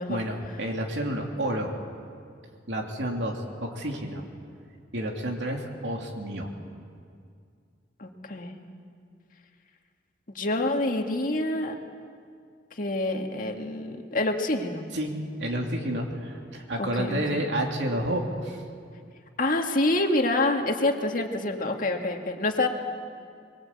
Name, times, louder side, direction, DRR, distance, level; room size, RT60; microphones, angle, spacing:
voice 1, 0.1-1.7 2.7-4.2 4.9-6.5 14.9-15.1 15.4-18.6, right 1 dB, 80° right, 1 dB, 3.0 m, -30 dB
voice 2, 8.0-8.5 10.3-11.7 12.7-14.9 16.8-17.4 19.4-22.7, left 2 dB, 50° left, 3 dB, 2.0 m, -27 dB
23.5 x 22.0 x 8.6 m, 2.3 s
head